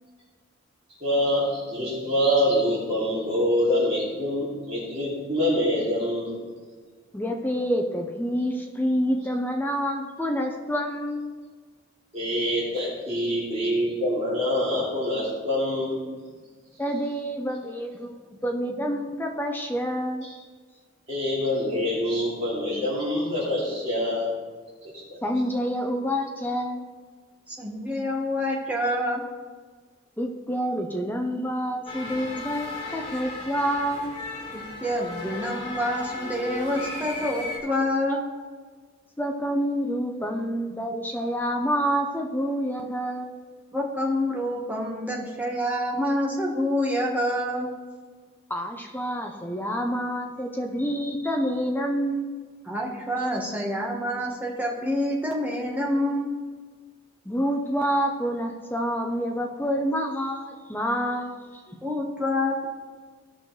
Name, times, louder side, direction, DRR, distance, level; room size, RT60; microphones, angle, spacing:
voice 1, 1.0-6.3 12.1-16.0 20.2-20.3 21.1-24.3 24.8-25.2, equal, 30° right, -9 dB, 2.6 m, -25 dB
voice 2, 7.1-11.3 16.8-20.3 25.2-26.9 30.2-34.2 39.2-43.4 48.5-52.5 57.3-61.6, equal, 10° left, 2 dB, 0.6 m, -28 dB
voice 3, 27.5-29.2 34.5-38.3 43.7-47.7 52.6-56.3 61.8-62.7, left 1 dB, 10° right, -2 dB, 1.3 m, -27 dB
sound 1, 31.9-37.6, left 2 dB, 30° left, 2.0 m, -36 dB
16.5 x 6.3 x 3.2 m, 1.5 s
head